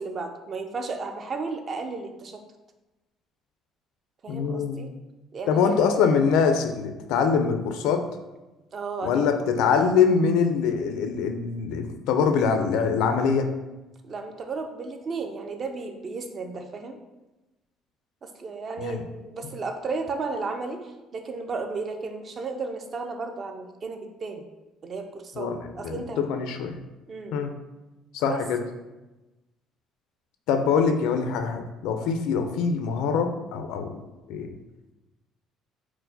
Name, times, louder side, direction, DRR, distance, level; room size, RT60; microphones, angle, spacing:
voice 1, 0.0-2.4 4.2-4.9 5.3-5.9 8.7-9.4 14.0-17.0 18.2-24.5 24.8-26.2 27.1-27.5 28.3-28.4, right 4 dB, 35° right, 5 dB, 0.4 m, -34 dB
voice 2, 4.3-4.8 5.5-8.0 9.0-13.5 18.8-19.0 25.4-25.6 25.8-26.8 27.3-27.5 28.1-28.6 30.5-34.5, left 6 dB, 85° left, 6 dB, 0.4 m, -24 dB
4.5 x 2.1 x 3.9 m, 1.1 s
cardioid pair, 150°, 0 cm